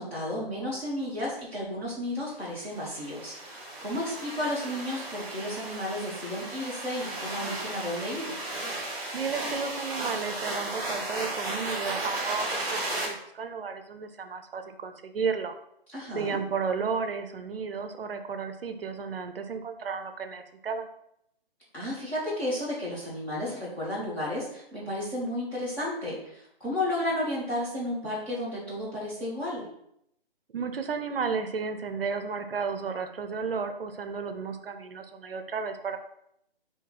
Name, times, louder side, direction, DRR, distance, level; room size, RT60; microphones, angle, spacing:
voice 1, 0.0-8.4 15.9-16.4 21.7-29.7, left 1 dB, 5° left, -10 dB, 0.7 m, -33 dB
sound 1, 2.6-13.0, right 2 dB, 15° right, 1.2 m, -35 dB
voice 2, 9.1-15.5 16.1-20.9 30.5-36.0, right 5 dB, 70° right, 7 dB, 0.6 m, -33 dB
4.5 x 2.8 x 3.6 m, 0.75 s
figure-of-eight pair, 150°, 30 cm